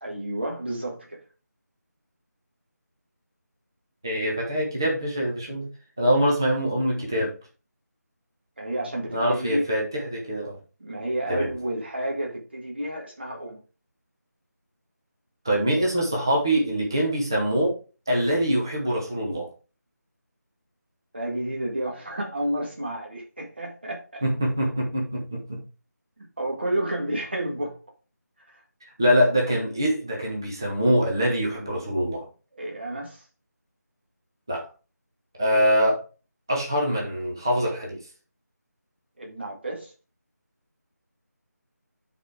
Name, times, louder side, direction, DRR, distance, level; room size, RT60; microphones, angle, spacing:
voice 1, 0.0-1.2 8.6-9.7 10.8-13.6 21.1-24.2 26.2-27.8 28.5-28.6 32.5-33.2 39.2-39.9, right 1 dB, 35° right, 1.9 m, -31 dB
voice 2, 4.0-5.7 6.0-7.3 9.1-10.6 11.3-11.5 15.4-17.7 18.1-19.5 24.2-25.6 29.0-32.3 34.5-34.6 35.4-36.0 36.5-38.0, equal, 15° right, 0.8 m, -24 dB
9.6 x 4.2 x 3.7 m
figure-of-eight pair, 180°, 9 cm